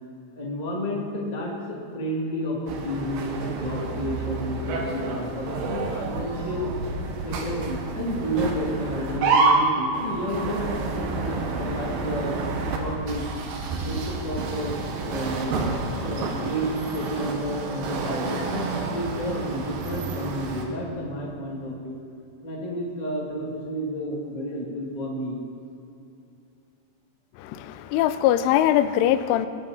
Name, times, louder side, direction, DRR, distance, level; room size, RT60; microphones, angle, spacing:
voice 1, 0.3-6.7 7.2-12.3 12.8-13.2 13.8-14.7 15.0-15.5 16.0-22.0 22.4-25.4, equal, 30° left, -3 dB, 0.7 m, -31 dB
sound 1, 2.7-20.7, right 3 dB, 65° right, 2.4 m, -29 dB
voice 2, 27.4-29.5, left 12 dB, 85° left, 12 dB, 3.1 m, -22 dB
20.5 x 12.0 x 4.1 m, 2.7 s
omnidirectional pair, 5.6 m